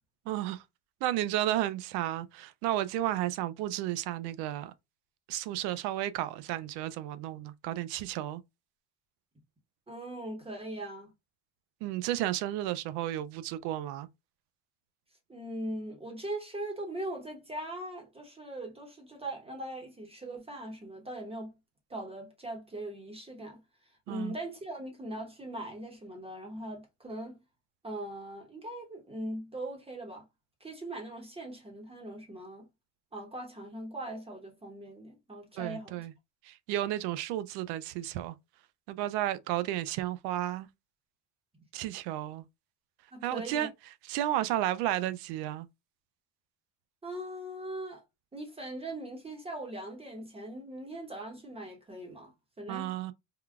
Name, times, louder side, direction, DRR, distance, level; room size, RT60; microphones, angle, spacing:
voice 1, 0.3-0.6 1.0-4.7 5.3-8.4 11.8-14.1 24.1-24.3 35.6-36.1 36.4-38.4 38.9-40.7 41.7-42.4 43.2-43.7 44.1-45.7 52.7-53.1, right 13 dB, 70° right, 0.6 m, -32 dB
voice 2, 9.9-11.1 15.3-21.5 21.9-23.6 24.1-27.4 27.8-30.2 30.6-32.7 33.1-36.1 43.1-43.7 47.0-48.0 48.3-53.0, right 1 dB, 15° right, 1.0 m, -40 dB
3.6 x 2.2 x 2.3 m
cardioid pair, 125°, 40 cm